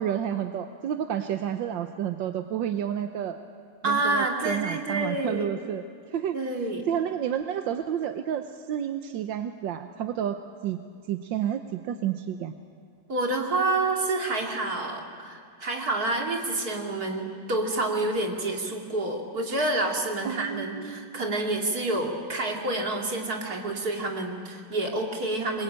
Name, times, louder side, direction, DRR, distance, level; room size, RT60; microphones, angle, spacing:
voice 1, 0.0-3.4 3.8-6.4 6.9-10.8 11.1-12.5 20.2-21.2, right 9 dB, 85° right, 7 dB, 1.6 m, -30 dB
voice 2, 3.8-5.5 6.3-6.8 13.1-25.6, right 2 dB, 55° right, 1 dB, 3.2 m, -28 dB
27.0 x 21.5 x 8.9 m, 2.2 s
omnidirectional pair, 2.0 m